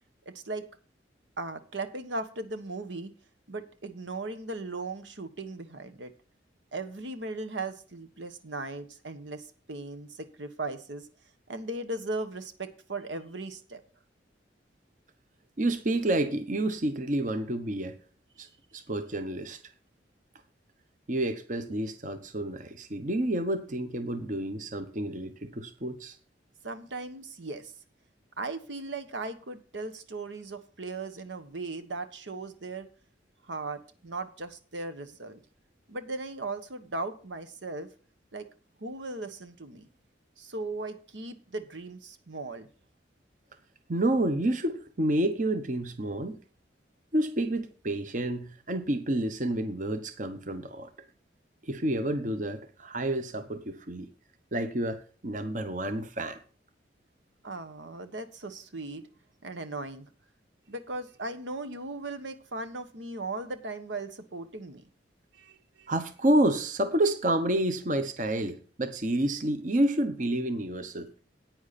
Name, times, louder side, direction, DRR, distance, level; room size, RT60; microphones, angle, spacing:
voice 1, 0.2-0.7 1.4-3.1 3.5-6.1 6.7-11.1 11.5-13.8 26.6-27.7 28.4-32.9 33.5-35.4 35.9-37.9 38.3-38.5 38.8-39.9 40.4-42.7 57.4-59.0 59.4-60.1 60.7-64.8 65.3-65.9, right 2 dB, 85° right, 1.3 m, -37 dB
voice 2, 15.6-18.0 18.4-18.5 18.7-19.6 21.1-26.2 43.9-46.4 47.1-50.9 51.6-54.1 54.5-56.4 65.9-71.1, right 1 dB, 45° right, 1.0 m, -29 dB
10.5 x 9.2 x 4.2 m
head